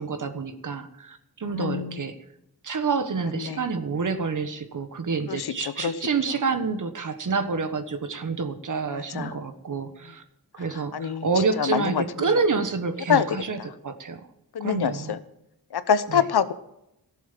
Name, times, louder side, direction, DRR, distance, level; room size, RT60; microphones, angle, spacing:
voice 1, 0.0-2.2 2.6-10.2 10.5-14.3 14.6-15.2 16.1-16.2, right 4 dB, 55° right, 9 dB, 1.4 m, -28 dB
voice 2, 1.5-2.0 3.4-3.6 5.3-5.5 5.8-5.9 9.1-9.3 10.9-11.3 11.6-12.0 13.1-13.2 14.5-15.2 15.7-16.5, left 7 dB, 90° left, 13 dB, 1.0 m, -25 dB
17.0 x 7.3 x 7.4 m, 0.84 s
wide cardioid pair, 180°, 38 cm